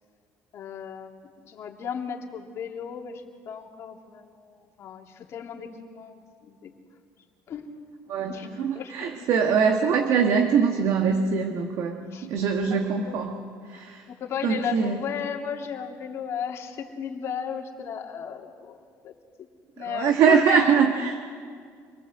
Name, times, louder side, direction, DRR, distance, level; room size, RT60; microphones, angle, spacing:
voice 1, 0.5-6.7 7.5-7.7 8.2-8.5 8.7-9.3 12.1-12.3 12.7-13.2 13.7-19.1 19.8-20.8, left 7 dB, 50° left, 2 dB, 2.8 m, -35 dB
voice 2, 8.1-13.4 13.7-14.1 14.4-15.0 19.8-21.2, right 6 dB, 60° right, 4 dB, 1.7 m, -23 dB
26.5 x 20.0 x 8.0 m, 2.1 s
cardioid pair, 135°, 6 cm